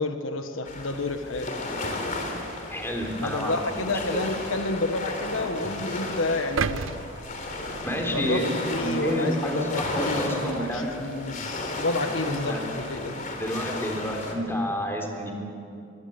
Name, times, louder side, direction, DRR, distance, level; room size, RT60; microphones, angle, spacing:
voice 1, 0.0-1.5 3.2-6.8 8.0-8.4 8.7-13.2, left 2 dB, 75° left, 6 dB, 1.4 m, -30 dB
sound 1, 0.7-14.3, left 2 dB, 40° left, 3.4 m, -34 dB
voice 2, 2.7-4.2 7.8-10.9 12.2-12.6 13.3-15.3, equal, 10° left, 2 dB, 3.7 m, -29 dB
sound 2, 6.6-8.7 9.2-9.4, right 5 dB, 70° right, 0.6 m, -33 dB
22.5 x 22.0 x 8.1 m, 2.6 s
head